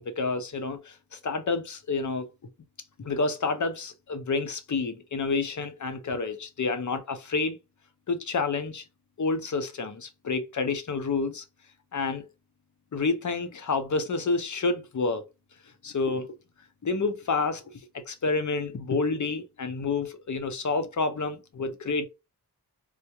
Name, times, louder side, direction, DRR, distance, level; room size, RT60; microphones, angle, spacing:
voice 1, 0.0-2.3 3.0-7.6 8.1-8.8 9.2-11.4 11.9-12.3 12.9-15.2 15.8-16.3 16.8-17.6 17.9-22.1, left 4 dB, 50° left, 0.7 m, -29 dB
3.5 x 2.1 x 2.9 m
cardioid pair, 45°, 40 cm